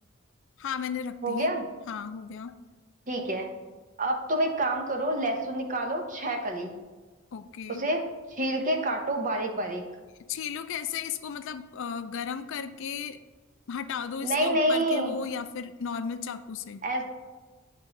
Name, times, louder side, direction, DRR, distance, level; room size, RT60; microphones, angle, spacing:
voice 1, 0.6-1.5 1.9-2.5 7.3-7.8 10.3-13.2 13.7-16.8, left 7 dB, 65° left, 11 dB, 0.4 m, -35 dB
voice 2, 1.2-1.6 3.1-3.5 4.0-6.8 7.8-8.0 8.3-9.8 14.2-15.1 16.8-17.1, right 1 dB, 40° right, 3 dB, 0.9 m, -28 dB
10.5 x 3.7 x 3.8 m, 1.3 s
head